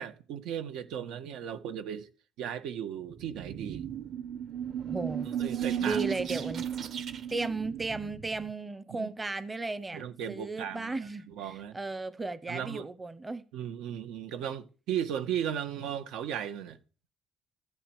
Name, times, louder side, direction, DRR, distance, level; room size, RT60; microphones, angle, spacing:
voice 1, 0.0-2.1 2.4-3.9 5.4-6.0 8.9-9.1 9.9-10.9 11.3-11.8 12.5-12.8 13.5-16.8, right 9 dB, 85° right, 2.0 m, -36 dB
sound 1, 3.1-8.5, right 9 dB, 45° right, 1.2 m, -35 dB
voice 2, 4.9-5.3 5.8-6.7 7.3-10.0 10.3-13.4, right 3 dB, 15° right, 0.8 m, -35 dB
14.5 x 11.5 x 6.5 m
cardioid pair, 170°, 0 cm